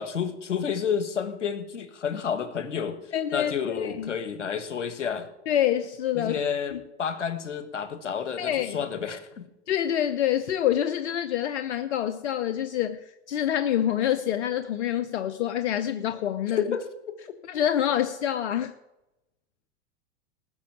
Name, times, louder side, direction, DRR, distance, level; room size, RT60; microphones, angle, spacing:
voice 1, 0.0-3.0 3.3-5.3 6.1-9.5 16.5-17.2, left 7 dB, 85° left, 11 dB, 1.5 m, -30 dB
voice 2, 3.1-4.1 5.5-6.3 6.7-6.8 8.4-8.8 9.7-16.6 17.5-18.7, left 10 dB, 70° left, 11 dB, 0.9 m, -26 dB
19.0 x 6.3 x 8.0 m, 0.95 s
hypercardioid pair, 90°, 35 cm